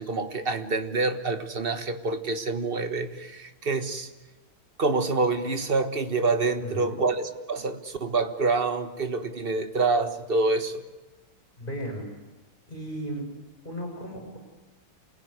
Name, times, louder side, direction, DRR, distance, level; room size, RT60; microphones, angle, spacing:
voice 1, 0.0-4.1 4.8-10.8, right 3 dB, 30° right, 8 dB, 1.5 m, -27 dB
voice 2, 6.6-7.0 11.6-12.1 12.7-13.3 13.6-14.4, equal, 20° left, 0 dB, 5.8 m, -35 dB
28.0 x 21.0 x 9.7 m, 1.1 s
omnidirectional pair, 2.1 m